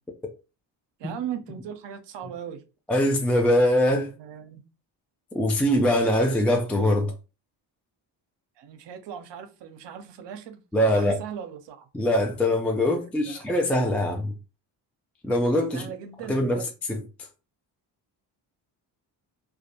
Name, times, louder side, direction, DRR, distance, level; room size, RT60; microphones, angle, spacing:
voice 1, 1.0-2.6 4.2-4.6 8.6-10.6 10.9-11.9 13.2-13.4 15.7-16.6, right 9 dB, 60° right, 0.6 m, -38 dB
voice 2, 2.9-4.1 5.3-7.1 10.7-11.2 11.9-14.3 15.2-15.9 16.3-17.0, left 1 dB, 5° left, 0.3 m, -23 dB
2.3 x 2.1 x 2.8 m
supercardioid pair, 65°, 48 cm